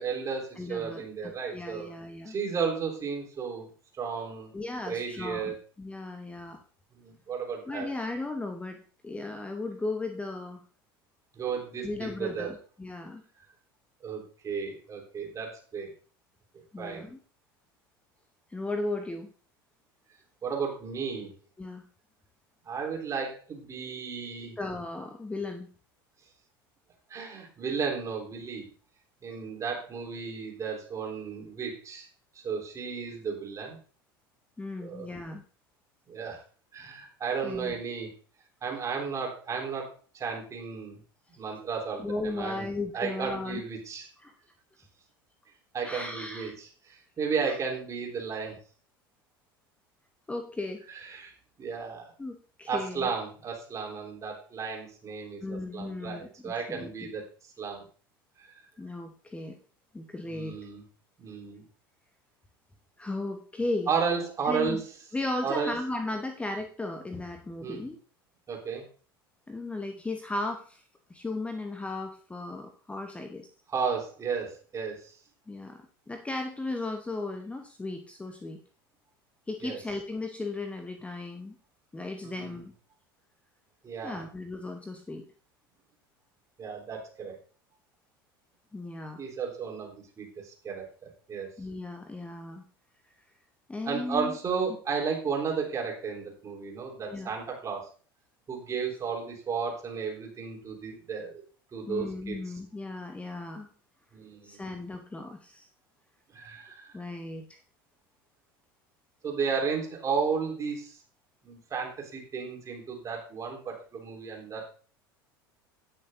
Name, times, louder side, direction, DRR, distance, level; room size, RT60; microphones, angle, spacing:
voice 1, 0.0-1.9 2.3-3.7 3.9-4.5 4.9-5.5 6.9-7.9 11.3-12.5 14.0-15.9 16.8-17.1 20.4-21.3 22.6-24.6 27.1-28.6 29.2-32.1 32.3-33.8 34.8-35.1 36.1-36.4 36.7-38.1 38.6-41.0 41.3-42.7 42.9-44.1 45.7-48.6 50.9-51.3 51.6-52.1 52.7-57.3 57.6-57.8 58.4-58.5 60.2-60.8 61.2-61.6 63.9-64.8 65.4-65.7 67.6-67.8 68.5-68.8 73.7-75.1 79.6-79.8 82.2-82.6 83.8-84.2 86.6-87.4 89.2-91.5 93.8-97.8 98.5-101.4 101.7-102.4 104.1-104.6 106.3-107.0 109.2-111.0 111.4-114.7, right 5 dB, 25° right, 0 dB, 3.5 m, -33 dB
voice 2, 0.6-2.3 4.5-6.6 7.7-10.6 11.8-13.2 16.7-17.2 18.5-19.3 21.6-21.8 24.6-25.7 34.6-35.4 37.4-37.7 42.0-43.6 44.2-44.3 45.8-46.5 47.4-47.5 50.3-50.8 52.2-53.1 55.4-56.9 58.8-59.6 59.9-60.6 63.0-63.9 64.4-64.8 65.1-68.0 69.5-70.8 71.1-73.5 75.5-78.6 79.5-81.6 81.9-82.7 84.0-85.2 88.7-89.2 91.6-92.6 93.7-94.4 97.1-97.3 101.9-103.7 104.4-105.7 106.9-107.6, left 2 dB, 10° left, 6 dB, 0.9 m, -36 dB
18.0 x 6.4 x 2.7 m, 0.41 s
figure-of-eight pair, 75°, 12 cm